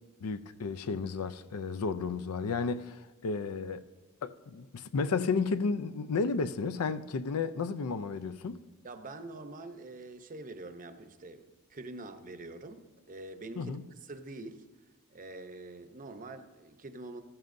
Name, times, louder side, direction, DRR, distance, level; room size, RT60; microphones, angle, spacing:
voice 1, 0.2-3.9 4.2-8.6 13.6-13.9, left 4 dB, 70° left, 0.5 m, -33 dB
voice 2, 8.8-14.7 15.1-17.2, right 2 dB, 35° right, 0.7 m, -45 dB
14.5 x 14.5 x 2.6 m
head